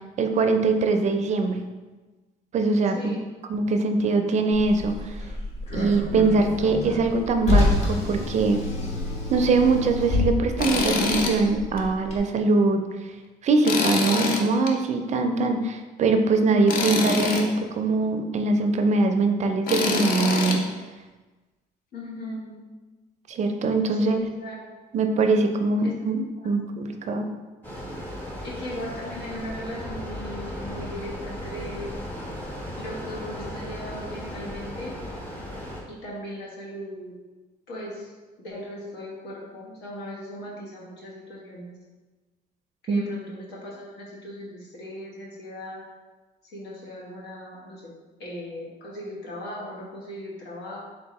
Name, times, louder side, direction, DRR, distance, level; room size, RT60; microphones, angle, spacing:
voice 1, 0.2-1.6 2.5-3.2 3.5-5.2 5.7-8.6 9.3-12.8 13.4-20.7 23.3-24.2 24.9-27.3 42.9-43.1, right 3 dB, 45° right, 6 dB, 0.4 m, -22 dB
voice 2, 2.8-3.2 21.9-22.6 23.9-24.6 25.8-25.9 26.4-26.5 28.4-31.9 32.8-35.0 35.9-37.1 37.7-38.1 38.4-41.7 42.8-45.8 46.4-47.9 48.2-50.8, left 1 dB, 80° left, -4 dB, 1.2 m, -38 dB
Car, 4.5-12.2, left 2 dB, 40° left, 1.1 m, -28 dB
Tools, 10.6-11.4 11.8-11.9 13.6-14.7 16.7-17.4 19.7-20.6, left 4 dB, 60° left, 0.6 m, -25 dB
sound 1, 27.6-35.8, equal, 10° left, 0.9 m, -36 dB
3.9 x 3.6 x 3.0 m, 1.2 s
cardioid pair, 110°, 17 cm